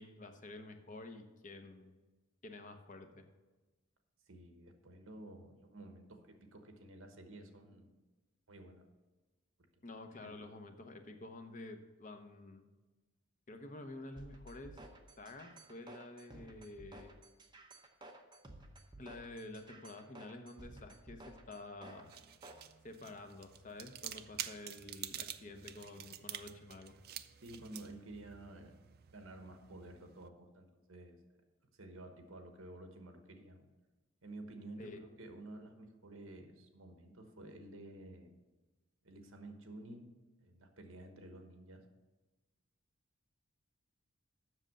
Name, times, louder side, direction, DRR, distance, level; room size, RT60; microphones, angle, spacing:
voice 1, 0.0-2.0 2.4-3.2 9.8-12.7 13.5-14.8 15.2-17.1 19.0-22.1 22.8-26.9 34.8-35.0, left 2 dB, 35° left, 6 dB, 0.8 m, -50 dB
voice 2, 4.3-7.9 8.5-8.8 10.2-10.5 27.4-28.8 29.1-31.2 31.7-33.7 34.2-38.3 39.0-40.1 40.4-41.8, right 1 dB, 65° right, 5 dB, 1.2 m, -52 dB
sound 1, 14.2-22.7, right 1 dB, 20° right, 0.8 m, -54 dB
sound 2, 21.8-30.3, right 11 dB, 45° right, 0.4 m, -49 dB
7.6 x 6.3 x 6.5 m, 1.2 s
head